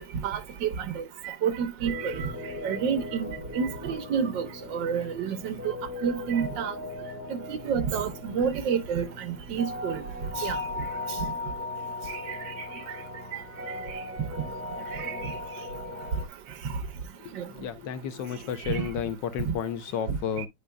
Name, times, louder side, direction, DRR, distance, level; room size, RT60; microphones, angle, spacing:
voice 1, 0.2-2.3 2.6-3.3 3.5-5.7 6.0-6.7 7.5-10.0 10.4-10.6 12.1-12.5 14.9-15.3 17.4-17.5 18.7-18.9 19.5-19.6, right 7 dB, 75° right, 1.7 m, -29 dB
sound 1, 1.8-16.3, left 3 dB, 15° right, 0.6 m, -38 dB
voice 2, 17.6-20.5, left 8 dB, 75° left, 1.3 m, -32 dB
9.9 x 5.1 x 2.2 m
omnidirectional pair, 2.0 m